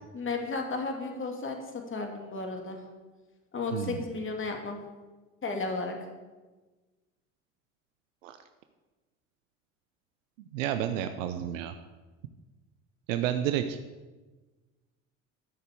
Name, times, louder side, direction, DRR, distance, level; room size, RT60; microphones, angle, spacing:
voice 1, 0.1-2.8 3.5-4.8 5.4-6.0, left 3 dB, 30° left, 3 dB, 2.7 m, -34 dB
voice 2, 3.7-4.0 8.2-8.4 10.5-11.7 13.1-13.8, right 10 dB, 80° right, 8 dB, 0.8 m, -30 dB
12.5 x 6.8 x 8.4 m, 1.3 s
hypercardioid pair, 70°, 38 cm